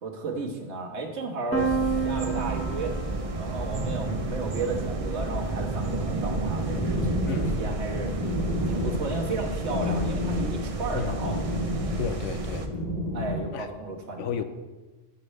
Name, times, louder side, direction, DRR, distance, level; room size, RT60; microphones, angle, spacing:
voice 1, 0.0-1.8 2.0-3.0 3.4-8.1 8.7-11.4 13.1-14.3, right 3 dB, 65° right, 1.5 m, -33 dB
Piano, 1.5-7.3, right 5 dB, 10° left, 1.0 m, -33 dB
sound 1, 1.6-12.7, right 2 dB, 40° right, 0.6 m, -31 dB
sound 2, 6.1-13.4, left 1 dB, 35° left, 1.2 m, -32 dB
voice 2, 7.3-7.6 10.9-11.2 12.0-12.7 13.5-13.7 14.2-14.4, left 8 dB, 90° left, 0.9 m, -32 dB
10.0 x 6.9 x 3.2 m
omnidirectional pair, 1.2 m